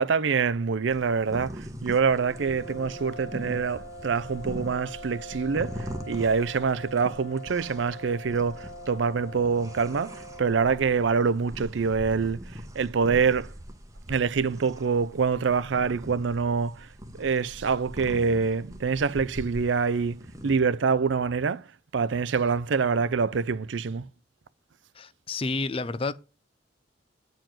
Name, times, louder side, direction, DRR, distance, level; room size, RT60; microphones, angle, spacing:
voice 1, 0.0-13.5 14.1-16.9 17.2-21.7 21.9-24.1, right 5 dB, 75° right, 0.5 m, -25 dB
sound 1, 0.9-20.6, equal, 15° right, 1.0 m, -42 dB
sound 2, 2.2-11.1, equal, 70° left, 1.8 m, -43 dB
voice 2, 24.9-26.1, left 3 dB, 30° left, 0.5 m, -30 dB
9.1 x 4.6 x 7.6 m
head